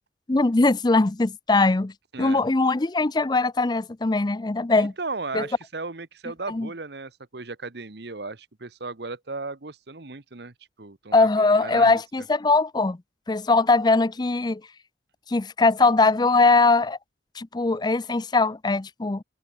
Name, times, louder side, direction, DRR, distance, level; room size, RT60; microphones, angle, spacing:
voice 1, 0.3-1.9 2.2-4.9 5.3-5.5 6.5-6.7 11.1-13.0 13.3-14.6 15.3-17.0 17.4-19.2, left 3 dB, 25° left, 0.5 m, -21 dB
voice 2, 4.7-12.0, right 3 dB, 60° right, 1.2 m, -36 dB
head